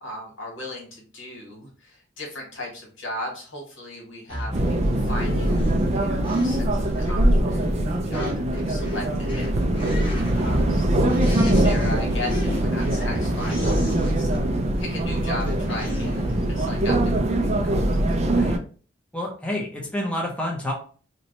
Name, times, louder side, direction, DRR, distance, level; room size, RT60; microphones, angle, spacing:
voice 1, 0.0-5.6 5.9-9.6 10.3-11.0 11.3-14.3 14.8-17.8 18.1-18.2, left 1 dB, 80° left, -1 dB, 1.7 m, -37 dB
sound 1, 4.3-14.5 15.0-16.5, left 1 dB, 30° left, 1.0 m, -35 dB
sound 2, 4.5-18.6, right 1 dB, 35° right, 0.4 m, -22 dB
voice 2, 19.1-20.7, left 1 dB, 5° left, -2 dB, 0.7 m, -28 dB
2.9 x 2.2 x 4.0 m, 0.41 s
head